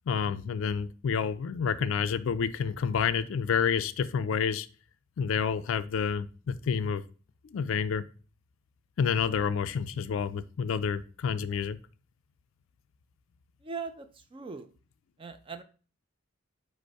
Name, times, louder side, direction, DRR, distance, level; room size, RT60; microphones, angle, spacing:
voice 1, 0.1-4.7 5.2-7.0 7.5-8.0 9.0-11.8, left 6 dB, 60° left, 13 dB, 0.3 m, -29 dB
voice 2, 13.6-14.7 15.2-15.6, right 5 dB, 25° right, 8 dB, 0.3 m, -40 dB
5.0 x 2.0 x 4.6 m, 0.37 s
head